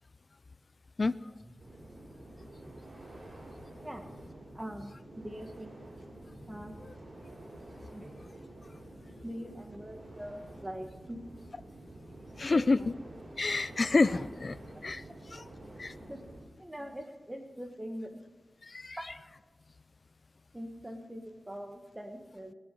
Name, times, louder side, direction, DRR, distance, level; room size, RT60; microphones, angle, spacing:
sound 1, 1.6-16.4, right 1 dB, 50° right, 5.2 m, -49 dB
voice 1, 4.5-5.8 6.5-6.7 7.9-8.1 9.2-11.2 12.5-12.9 14.7-14.9 15.3-15.4 16.1-16.2 16.6-18.2 20.5-22.5, equal, 10° right, 3 dB, 1.8 m, -43 dB
voice 2, 12.4-12.8 13.4-14.6 14.8-15.0 15.8-15.9 18.8-19.0, left 3 dB, 45° left, 16 dB, 0.4 m, -27 dB
19.0 x 9.8 x 5.5 m, 1.3 s
wide cardioid pair, 115°, 0 cm